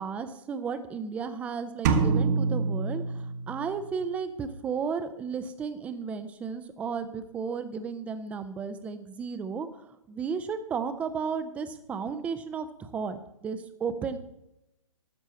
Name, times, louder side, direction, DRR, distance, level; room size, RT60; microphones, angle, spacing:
voice 1, 0.0-9.7 10.1-14.2, right 6 dB, 5° right, 11 dB, 0.4 m, -34 dB
sound 1, 1.8-3.8, right 4 dB, 30° right, 1.0 m, -26 dB
12.5 x 4.5 x 7.4 m, 0.87 s
figure-of-eight pair, 140°, 18 cm